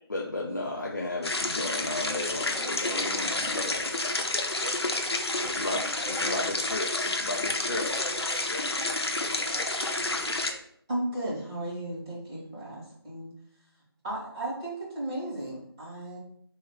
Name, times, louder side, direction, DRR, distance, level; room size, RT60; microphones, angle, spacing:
voice 1, 0.0-3.8 5.4-5.8 6.1-7.9, left 2 dB, 45° left, -2 dB, 0.6 m, -34 dB
sound 1, 1.2-10.5, left 2 dB, 80° left, 0.8 m, -30 dB
voice 2, 2.0-6.5 7.8-10.6, left 1 dB, 60° left, -3 dB, 1.4 m, -45 dB
voice 3, 10.9-13.3 14.0-16.2, right 1 dB, 10° right, -12 dB, 1.5 m, -35 dB
3.6 x 3.1 x 4.7 m, 0.66 s
figure-of-eight pair, 180°, 13 cm